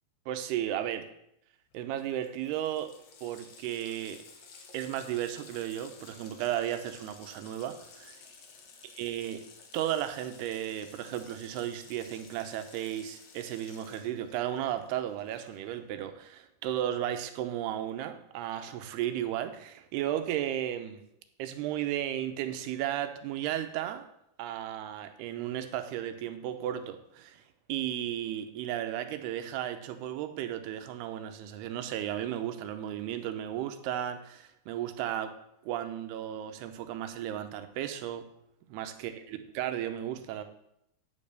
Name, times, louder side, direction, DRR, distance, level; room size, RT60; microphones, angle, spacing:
voice 1, 0.3-1.1 1.7-2.9 3.2-4.2 4.7-8.2 9.0-9.4 9.7-21.0 21.4-24.1 24.4-27.4 27.7-35.3 35.6-38.2 38.7-40.4, right 11 dB, 85° right, 9 dB, 2.8 m, -34 dB
Water tap faucet, 1.7-1.8 2.0-15.8, left 5 dB, 75° left, 1.5 m, -54 dB
9.4 x 5.4 x 6.6 m, 0.77 s
omnidirectional pair, 4.6 m